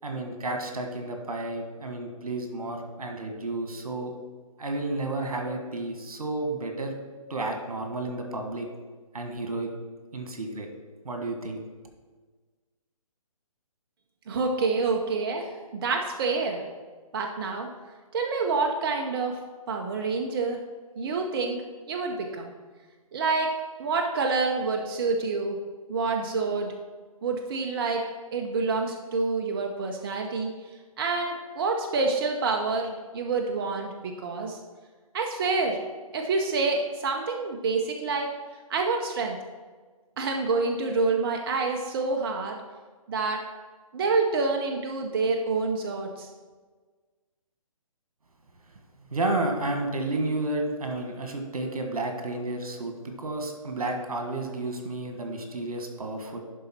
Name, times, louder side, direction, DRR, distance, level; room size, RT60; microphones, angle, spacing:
voice 1, 0.0-4.1 4.6-6.9 7.3-8.7 9.1-9.7 10.1-10.7 11.0-11.6 49.1-56.4, right 2 dB, 85° right, 4 dB, 1.6 m, -31 dB
voice 2, 14.3-16.6 17.1-17.7 18.1-19.4 19.7-20.6 21.0-21.6 21.9-22.5 23.1-23.5 23.8-25.6 25.9-26.7 27.2-28.0 28.3-30.5 31.0-34.6 35.1-35.8 36.1-38.3 38.7-39.4 40.2-42.6 43.1-43.4 43.9-46.3, right 4 dB, 40° right, 2 dB, 0.7 m, -27 dB
11.0 x 3.9 x 4.3 m, 1.4 s
hypercardioid pair, 150°, 19 cm